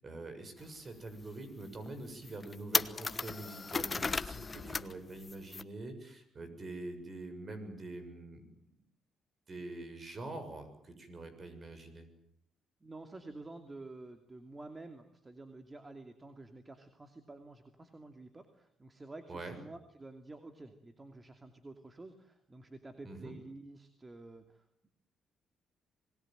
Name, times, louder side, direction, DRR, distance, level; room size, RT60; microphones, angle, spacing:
voice 1, 0.0-8.4 9.5-12.1 19.3-19.6 23.0-23.3, right 2 dB, 40° right, 9 dB, 7.1 m, -45 dB
sound 1, 0.6-0.7 1.2-1.3 1.9-2.0 2.2-4.9 5.2-5.6, left 4 dB, 30° left, 1.1 m, -35 dB
voice 2, 12.8-24.9, right 2 dB, 20° right, 7 dB, 2.6 m, -50 dB
26.5 x 20.5 x 9.2 m, 0.71 s
cardioid pair, 90°, 0 cm